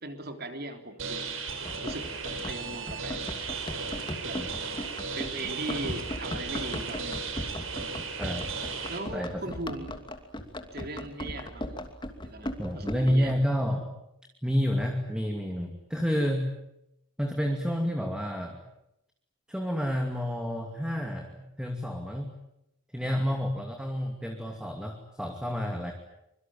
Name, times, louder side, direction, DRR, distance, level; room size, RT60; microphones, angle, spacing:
voice 1, 0.0-1.3 1.8-3.2 4.2-4.4 5.1-7.3 8.9-10.0 10.7-11.8 12.2-13.3, right 2 dB, 50° right, 6 dB, 3.6 m, -39 dB
sound 1, 1.0-9.0, right 4 dB, 80° right, 5.2 m, -35 dB
Run, 1.6-13.3, left 1 dB, 25° left, 2.8 m, -38 dB
voice 2, 12.6-13.9 14.4-16.5 17.2-18.6 19.5-22.3 22.9-25.9, equal, 5° right, 3 dB, 2.6 m, -29 dB
25.5 x 24.0 x 8.9 m, 0.82 s
head